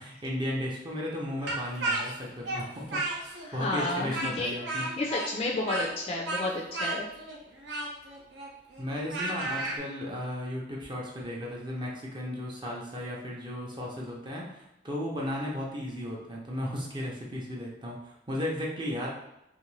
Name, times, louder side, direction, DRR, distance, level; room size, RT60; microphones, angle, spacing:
voice 1, 0.0-4.9 8.8-19.1, left 1 dB, 25° right, -3 dB, 0.6 m, -35 dB
Speech, 1.5-3.5 3.8-9.8, right 2 dB, 80° right, 0.7 m, -33 dB
voice 2, 3.4-4.5 5.0-7.1, left 2 dB, 35° left, -2 dB, 0.3 m, -31 dB
2.6 x 2.5 x 3.1 m, 0.90 s
head